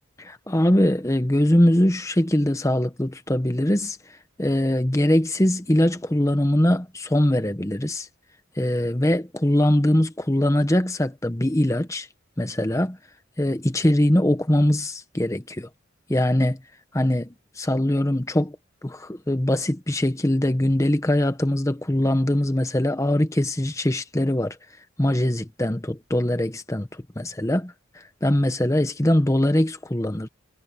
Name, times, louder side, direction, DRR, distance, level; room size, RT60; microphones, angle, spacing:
voice 1, 0.2-4.0 4.4-8.1 8.6-12.1 12.4-13.0 13.4-15.7 16.1-16.6 16.9-18.6 18.8-24.6 25.0-30.3, left 1 dB, 15° left, 0.9 m, -22 dB
head